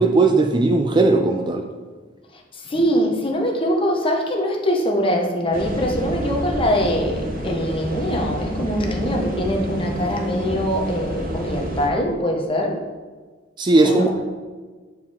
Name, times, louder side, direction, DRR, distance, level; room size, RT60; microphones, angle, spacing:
voice 1, 0.0-1.7 13.6-14.2, right 3 dB, 25° right, 4 dB, 0.4 m, -17 dB
voice 2, 2.5-12.8 13.8-14.2, equal, 30° left, 1 dB, 1.0 m, -23 dB
sound 1, 5.5-11.9, equal, 50° right, 0.9 m, -28 dB
8.5 x 4.6 x 3.6 m, 1.4 s
head